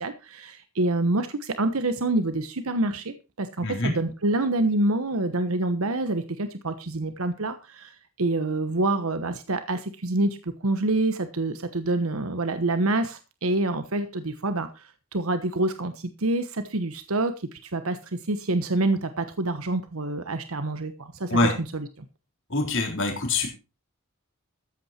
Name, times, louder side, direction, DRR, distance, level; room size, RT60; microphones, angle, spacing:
voice 1, 0.0-14.8 15.1-21.3 21.7-21.9, right 2 dB, 80° right, 10 dB, 1.1 m, -27 dB
voice 2, 3.6-3.9 21.3-21.5 22.5-23.5, left 2 dB, 60° left, 2 dB, 3.7 m, -24 dB
14.0 x 8.7 x 4.4 m, 0.30 s
head